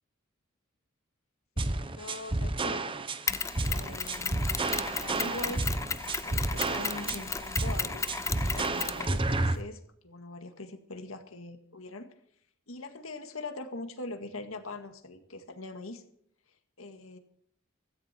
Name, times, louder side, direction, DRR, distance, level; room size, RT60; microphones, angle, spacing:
voice 1, 1.6-2.8 3.7-4.6 4.9-5.7 6.2-12.1 12.7-16.0 16.8-17.2, left 2 dB, 80° left, 7 dB, 2.0 m, -42 dB
sound 1, 1.6-9.6, right 2 dB, 25° right, 0.8 m, -31 dB
Mechanisms, 3.3-9.6, left 5 dB, 15° left, 0.4 m, -34 dB
16.0 x 14.0 x 4.5 m, 0.67 s
head